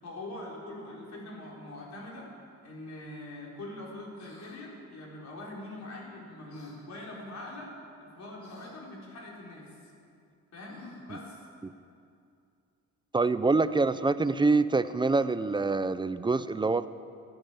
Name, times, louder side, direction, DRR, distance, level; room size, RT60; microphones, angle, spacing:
voice 1, 0.0-2.3 2.6-9.7 10.5-10.8 11.1-11.5, left 1 dB, 65° left, -3 dB, 4.3 m, -43 dB
sound 1, 4.1-4.6 6.5-6.8 8.4-8.8 10.7-11.2, left 2 dB, 85° left, 3.3 m, -52 dB
voice 2, 13.1-16.9, right 3 dB, 15° right, 14 dB, 0.5 m, -25 dB
13.5 x 10.0 x 8.4 m, 2.4 s
cardioid pair, 90°, 30 cm